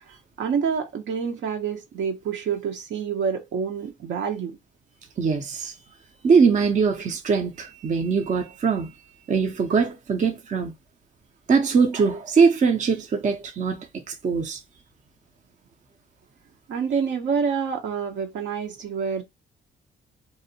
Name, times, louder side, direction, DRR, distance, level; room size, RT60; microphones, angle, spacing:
voice 1, 0.4-4.6 16.7-19.2, right 6 dB, 70° right, 0.8 m, -27 dB
voice 2, 5.2-5.7 6.2-8.9 9.3-10.7 11.5-13.9 14.2-14.6, right 5 dB, 40° right, 0.6 m, -21 dB
2.7 x 2.0 x 2.7 m
cardioid pair, 90°, 20 cm